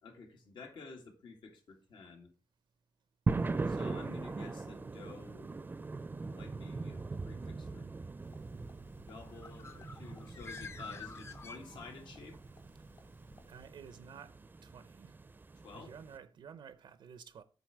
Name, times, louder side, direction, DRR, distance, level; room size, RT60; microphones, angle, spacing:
voice 1, 0.0-2.3 3.7-5.5 6.3-7.0 7.2-7.9 9.1-12.4 15.6-15.9, left 4 dB, 90° left, 2.0 m, -51 dB
sound 1, 3.3-16.2, right 3 dB, 25° right, 0.4 m, -40 dB
sound 2, 8.2-13.7, left 3 dB, 60° left, 1.8 m, -61 dB
Bird, 9.2-12.2, left 4 dB, 35° left, 0.5 m, -49 dB
voice 2, 13.4-15.2 15.7-17.4, right 7 dB, 90° right, 0.6 m, -52 dB
8.1 x 4.0 x 6.1 m
wide cardioid pair, 135°, 8 cm